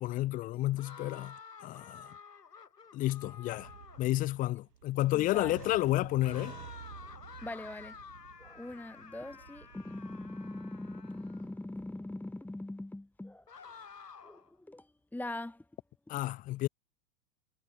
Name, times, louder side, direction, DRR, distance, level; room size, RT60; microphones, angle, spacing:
voice 1, 0.0-1.4 1.6-2.1 2.9-3.7 4.0-6.6 16.1-16.7, left 16 dB, 20° left, 0.4 m, -31 dB
sound 1, 0.8-4.2 6.2-11.5 13.5-14.5, left 6 dB, 90° left, 6.3 m, -51 dB
sound 2, 3.0-11.5, right 8 dB, 80° right, 4.1 m, -52 dB
voice 2, 5.1-5.6 7.4-7.9 8.4-13.4 14.2-14.9 15.1-15.6, left 1 dB, 5° left, 1.7 m, -42 dB
hypercardioid pair, 105°, 47 cm